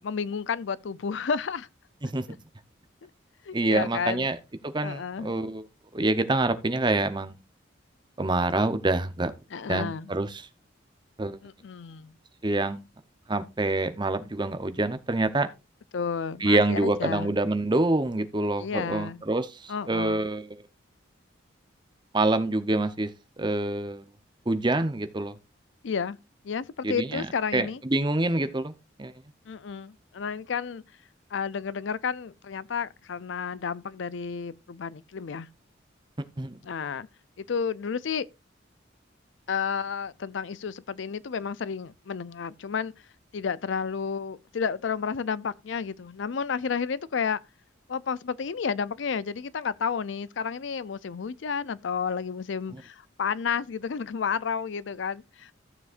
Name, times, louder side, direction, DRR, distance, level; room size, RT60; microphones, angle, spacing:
voice 1, 0.0-1.7 3.0-3.1 3.5-4.3 4.8-5.3 9.5-10.1 11.4-12.1 15.9-17.3 18.6-19.2 19.7-20.3 25.8-26.2 26.4-27.8 29.5-30.8 31.3-35.5 36.6-37.1 37.4-38.3 39.5-42.9 43.3-47.4 47.9-55.5, left 6 dB, 70° left, 0.5 m, -31 dB
voice 2, 3.5-4.4 4.6-5.6 5.9-7.4 8.2-9.3 9.7-10.5 11.2-11.4 12.4-12.8 13.3-15.5 16.4-20.4 22.1-23.1 23.4-24.0 24.5-25.3 26.8-27.3 27.5-28.7 29.0-29.1 36.4-36.6, right 2 dB, 25° right, 0.7 m, -26 dB
15.0 x 7.1 x 2.5 m
head